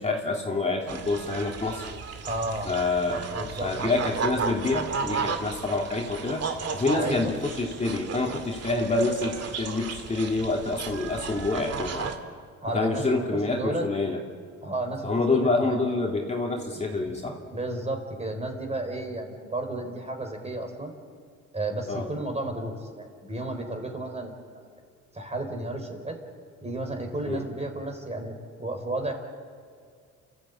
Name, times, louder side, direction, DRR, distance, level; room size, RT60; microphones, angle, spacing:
voice 1, 0.0-1.9 2.6-6.4 6.7-12.1 12.7-14.2 15.0-17.4 21.9-22.1 27.3-27.4, left 3 dB, 20° left, -1 dB, 3.0 m, -27 dB
sound 1, 0.9-12.2, right 5 dB, 55° right, 2.2 m, -34 dB
voice 2, 2.2-2.7 3.3-3.7 6.9-7.3 12.6-13.9 14.6-15.8 16.9-17.0 17.5-20.9 21.5-24.4 25.1-26.2 26.6-29.1, right 2 dB, 20° right, 4 dB, 4.7 m, -32 dB
29.5 x 14.5 x 8.7 m, 2.1 s
cardioid pair, 90°, 30 cm